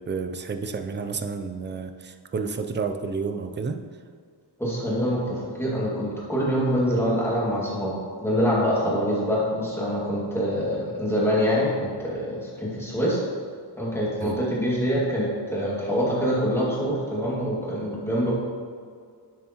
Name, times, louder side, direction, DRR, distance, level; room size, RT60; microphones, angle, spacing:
voice 1, 0.0-3.8 14.2-14.4, right 5 dB, 25° right, 6 dB, 0.4 m, -30 dB
voice 2, 4.6-13.2 13.8-18.3, equal, 5° left, -7 dB, 2.2 m, -25 dB
11.0 x 7.1 x 3.0 m, 2.1 s
wide cardioid pair, 170°, 44 cm